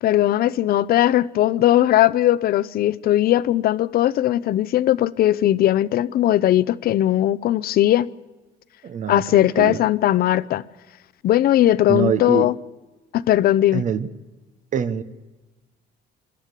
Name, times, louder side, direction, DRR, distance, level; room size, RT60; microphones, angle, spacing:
voice 1, 0.0-8.1 9.1-10.6 11.2-12.5 13.1-13.8, left 13 dB, 65° left, 0.7 m, -18 dB
voice 2, 8.8-9.8 11.9-12.5 13.7-14.1 14.7-15.0, right 7 dB, 50° right, 1.1 m, -24 dB
26.5 x 12.0 x 8.3 m
cardioid pair, 110°, 17 cm